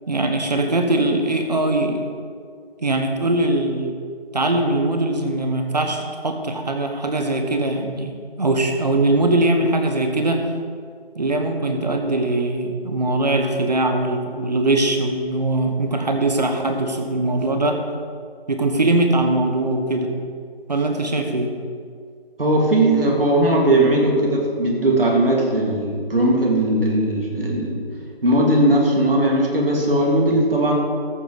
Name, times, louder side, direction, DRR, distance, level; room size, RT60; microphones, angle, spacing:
voice 1, 0.1-2.1 2.8-3.9 4.3-8.1 8.4-10.4 11.1-17.8 18.5-20.1 20.7-21.5, right 2 dB, 45° right, 5 dB, 1.2 m, -21 dB
voice 2, 22.4-27.8 28.2-30.8, right 1 dB, 65° right, -2 dB, 2.7 m, -18 dB
14.5 x 8.3 x 4.1 m, 2.1 s
figure-of-eight pair, 170°, 31 cm